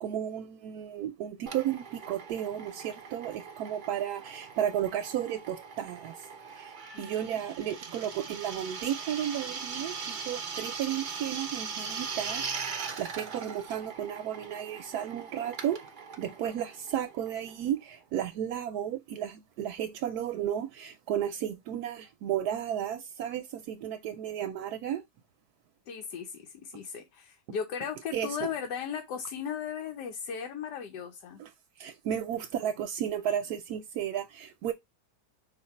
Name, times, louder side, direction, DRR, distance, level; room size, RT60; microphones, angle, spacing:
voice 1, 0.0-15.9 16.2-25.0 26.7-26.8 28.1-28.5 31.4-31.5 31.8-34.7, right 10 dB, 75° right, 1.0 m, -33 dB
Drill, 1.5-17.8, right 5 dB, 55° right, 0.5 m, -40 dB
voice 2, 25.9-31.4, left 7 dB, 85° left, 1.3 m, -37 dB
4.9 x 2.6 x 4.1 m
omnidirectional pair, 1.7 m